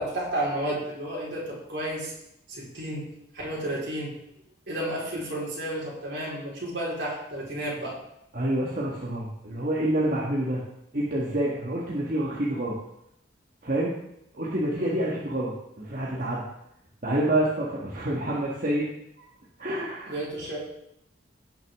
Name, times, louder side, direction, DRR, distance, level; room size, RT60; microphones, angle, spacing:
voice 1, 0.0-2.1 2.5-3.0 3.3-4.1 4.7-8.0 14.7-14.9 20.1-20.6, right 1 dB, 65° right, -5 dB, 4.4 m, -32 dB
voice 2, 8.3-10.6 10.9-12.8 13.6-14.0 14.3-16.4 17.0-18.9 19.2-19.3 19.6-20.2, right 1 dB, 45° right, -5 dB, 1.6 m, -27 dB
17.0 x 6.4 x 3.6 m, 0.79 s
head